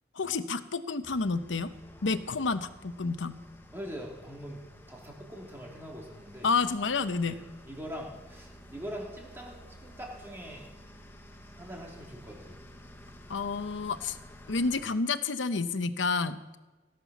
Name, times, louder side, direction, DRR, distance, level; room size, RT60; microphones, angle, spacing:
voice 1, 0.1-1.7 2.0-3.4 6.4-7.4 13.3-14.2 14.5-16.6, left 4 dB, 90° left, 12 dB, 0.8 m, -30 dB
sound 1, 1.0-14.8, equal, 10° left, 1.1 m, -52 dB
voice 2, 3.7-6.5 7.2-7.4 7.6-10.7 11.5-12.6, equal, 15° right, -1 dB, 2.7 m, -43 dB
17.0 x 7.6 x 6.0 m, 1.2 s
head